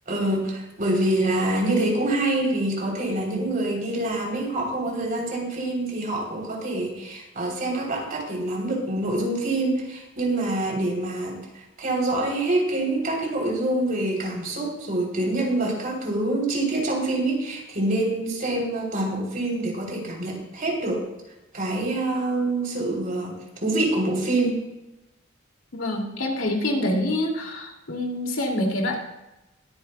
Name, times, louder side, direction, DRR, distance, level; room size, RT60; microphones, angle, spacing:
voice 1, 0.1-21.0 21.5-24.6, right 2 dB, 45° right, -1 dB, 3.3 m, -26 dB
voice 2, 25.7-29.0, left 1 dB, 75° left, 1 dB, 2.4 m, -26 dB
22.0 x 9.8 x 2.2 m, 0.97 s
head